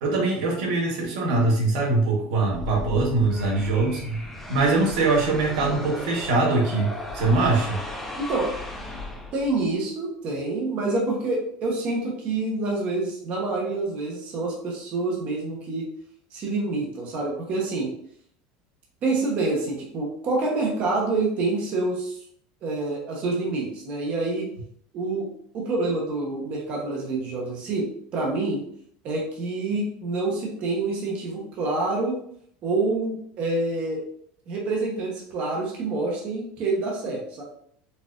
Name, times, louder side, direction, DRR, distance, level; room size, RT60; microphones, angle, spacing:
voice 1, 0.0-7.8, right 3 dB, 90° right, -1 dB, 1.0 m, -23 dB
sound 1, 2.4-9.7, left 2 dB, 5° left, 0.4 m, -36 dB
voice 2, 8.2-8.5 9.3-15.8 16.3-17.9 19.0-22.2 22.6-24.5 24.9-25.3 25.5-28.6 29.0-32.2 32.6-34.0 34.5-37.4, right 3 dB, 35° right, -2 dB, 0.8 m, -27 dB
4.1 x 2.4 x 2.4 m, 0.64 s
cardioid pair, 165°, 4 cm